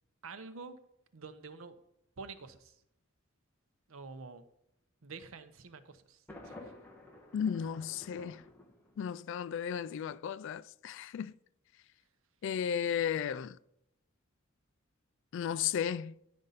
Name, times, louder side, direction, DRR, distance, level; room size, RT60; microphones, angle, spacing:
voice 1, 0.2-0.8 1.1-1.7 2.2-2.8 3.9-4.4 5.0-6.6, right 4 dB, 80° right, 0.7 m, -48 dB
Thunder, 6.3-9.3, left 2 dB, 10° left, 1.1 m, -52 dB
voice 2, 7.3-8.4 9.0-11.3 12.4-13.6 15.3-16.1, left 8 dB, 65° left, 0.3 m, -34 dB
10.5 x 5.3 x 4.0 m
head